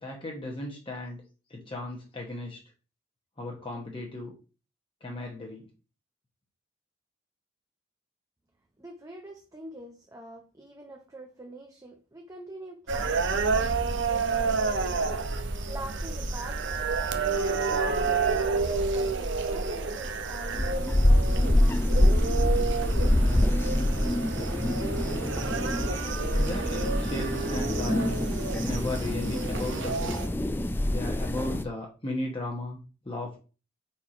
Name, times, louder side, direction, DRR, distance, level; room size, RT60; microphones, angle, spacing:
voice 1, 0.0-1.2 1.5-2.6 3.4-4.3 5.0-5.7 26.3-28.2 28.6-30.2 30.9-33.4, left 2 dB, 25° left, 0 dB, 1.0 m, -35 dB
voice 2, 8.8-16.8 17.3-22.2, right 2 dB, 15° right, 2 dB, 0.7 m, -45 dB
sound 1, 12.9-30.3, right 4 dB, 65° right, 0.8 m, -29 dB
sound 2, 20.5-31.6, left 1 dB, 10° left, 0.4 m, -26 dB
4.6 x 4.3 x 4.8 m, 0.34 s
head